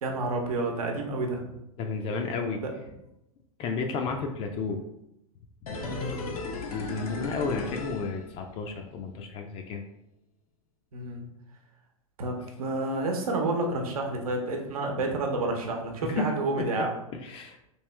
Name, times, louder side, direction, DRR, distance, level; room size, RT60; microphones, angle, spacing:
voice 1, 0.0-1.4 2.6-2.7 5.8-6.2 7.5-7.6 10.9-11.3 12.2-16.9, right 2 dB, 75° right, 2 dB, 0.8 m, -30 dB
voice 2, 1.8-2.6 3.6-4.8 5.6-5.8 6.7-9.8 16.1-16.3 17.2-17.6, left 4 dB, 30° left, 4 dB, 0.4 m, -32 dB
sound 1, 5.7-8.8 9.1-9.2, left 3 dB, 80° left, 0.6 m, -36 dB
3.1 x 2.9 x 3.2 m, 0.85 s
hypercardioid pair, 110°, 19 cm